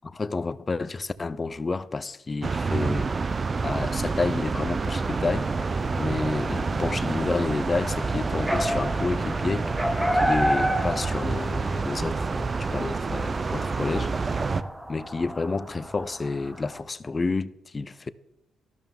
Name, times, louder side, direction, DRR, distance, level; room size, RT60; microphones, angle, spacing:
voice 1, 0.1-5.5 6.0-9.7 10.1-14.1 14.9-18.1, left 3 dB, 30° left, 0.6 m, -30 dB
sound 1, 2.4-14.6, right 4 dB, 35° right, 0.6 m, -28 dB
sound 2, 4.9-16.8, equal, 5° right, 1.1 m, -32 dB
12.5 x 12.5 x 3.7 m
cardioid pair, 90°, 0 cm